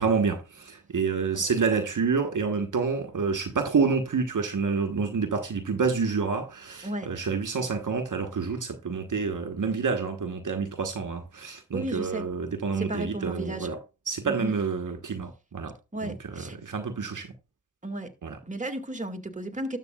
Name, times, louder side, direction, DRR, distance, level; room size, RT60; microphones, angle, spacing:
voice 1, 0.0-13.8 14.1-15.7 16.0-17.3 18.2-18.4, right 5 dB, 55° right, 1.3 m, -28 dB
voice 2, 11.7-12.3 12.8-13.7 14.2-14.5 15.9-16.6 17.8-18.1 18.4-19.8, right 1 dB, 20° right, 2.0 m, -33 dB
12.5 x 7.9 x 2.3 m
supercardioid pair, 40°, 36 cm